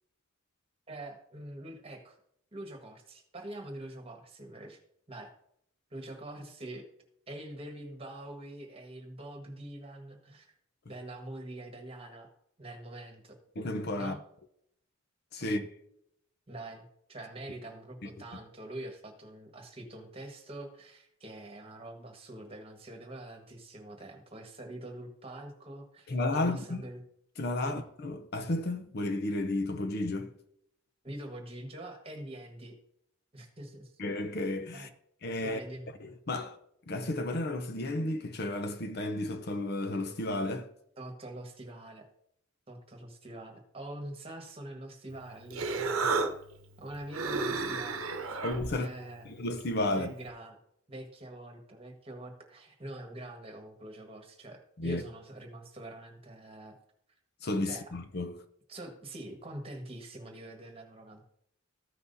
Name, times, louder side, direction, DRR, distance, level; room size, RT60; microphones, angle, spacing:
voice 1, 0.9-2.2 2.5-4.8 5.1-5.3 5.9-6.8 7.3-10.6 10.9-12.3 12.6-13.3 13.9-14.2 15.4-15.5 16.5-27.0 27.6-27.8 31.0-32.7 33.3-33.9 34.7-34.9 35.4-35.9 41.0-42.1 42.7-46.3 46.8-48.0 48.3-48.4 48.7-49.3 49.9-50.6 50.9-56.8 57.6-57.9 58.7-61.2, right 1 dB, 25° right, 1.5 m, -44 dB
voice 2, 13.6-14.2 15.3-15.7 26.1-26.8 27.4-30.3 34.0-34.9 35.2-35.6 36.0-36.6 36.9-40.7 48.4-48.9 49.3-50.1 54.8-55.0 57.4-58.4, left 2 dB, 50° left, 0.7 m, -32 dB
Human voice, 45.1-50.3, right 4 dB, 85° right, 0.9 m, -35 dB
14.5 x 5.9 x 2.7 m
head